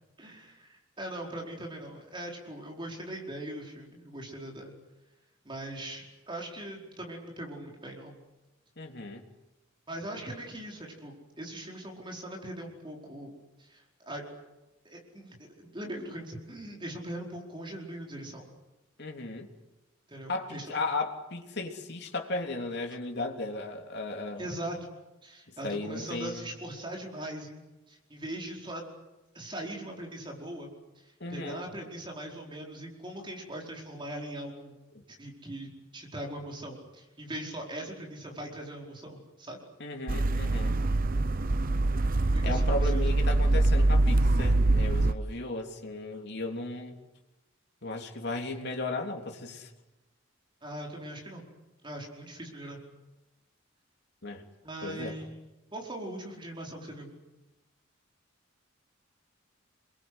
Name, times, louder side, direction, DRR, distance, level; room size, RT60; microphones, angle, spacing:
voice 1, 0.2-4.7 5.4-8.1 9.9-13.3 13.6-14.2 14.9-18.4 20.1-20.7 24.4-24.9 25.2-27.6 27.9-28.8 29.3-30.7 31.3-34.8 35.1-39.6 42.3-43.0 50.6-51.4 51.8-52.8 54.6-55.4 55.7-57.1, right 1 dB, 25° right, 0 dB, 4.9 m, -40 dB
voice 2, 8.8-9.2 19.0-19.5 20.3-24.4 25.6-26.5 31.2-31.6 39.8-40.7 42.4-46.9 47.8-49.7 54.2-54.4 54.8-55.2, left 2 dB, 55° left, 2 dB, 3.4 m, -35 dB
sound 1, 40.1-45.1, right 2 dB, 45° right, 0.9 m, -24 dB
29.0 x 23.0 x 8.2 m, 1.0 s
head